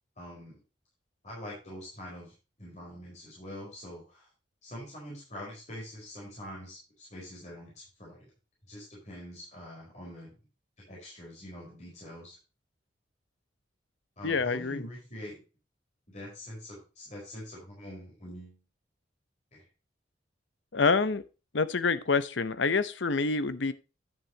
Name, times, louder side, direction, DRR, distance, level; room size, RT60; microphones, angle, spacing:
voice 1, 0.2-0.6 1.2-4.3 4.6-8.3 8.7-10.3 10.9-12.4 14.2-15.4 16.1-18.6 19.5-19.6, equal, 40° left, 4.6 m, -44 dB
voice 2, 14.2-14.9 20.7-21.2 21.5-23.7, left 4 dB, 75° left, 0.8 m, -27 dB
9.8 x 9.3 x 2.8 m
head